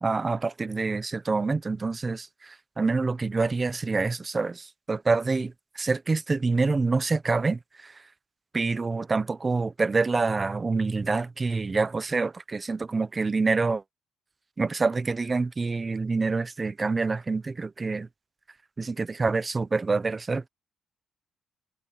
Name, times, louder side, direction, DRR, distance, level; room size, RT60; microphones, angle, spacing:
voice 1, 0.0-7.9 8.5-13.8 14.6-18.1 18.8-20.5, right 3 dB, 30° right, 1.0 m, -26 dB
cardioid pair, 90°, 0 cm